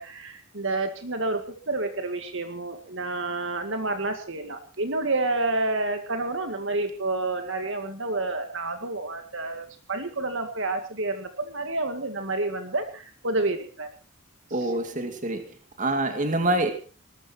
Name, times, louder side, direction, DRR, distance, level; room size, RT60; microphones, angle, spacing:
voice 1, 0.0-13.9 14.6-14.7, right 2 dB, 60° right, 2.2 m, -29 dB
voice 2, 14.5-15.4 15.8-16.7, right 1 dB, 35° right, 2.3 m, -25 dB
19.5 x 14.0 x 4.5 m
head